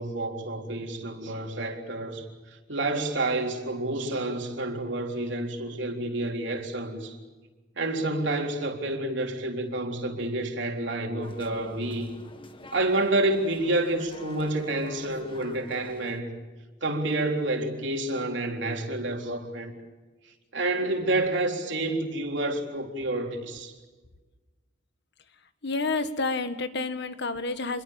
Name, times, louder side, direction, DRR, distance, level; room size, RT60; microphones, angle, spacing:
voice 1, 0.0-7.2 7.8-12.1 12.7-16.4 16.8-19.7 20.5-23.7, right 2 dB, 70° right, 3.8 m, -29 dB
sound 1, 11.2-16.2, left 2 dB, 30° left, 1.9 m, -46 dB
voice 2, 25.6-27.8, left 3 dB, 65° left, 1.8 m, -29 dB
28.5 x 23.0 x 7.3 m
head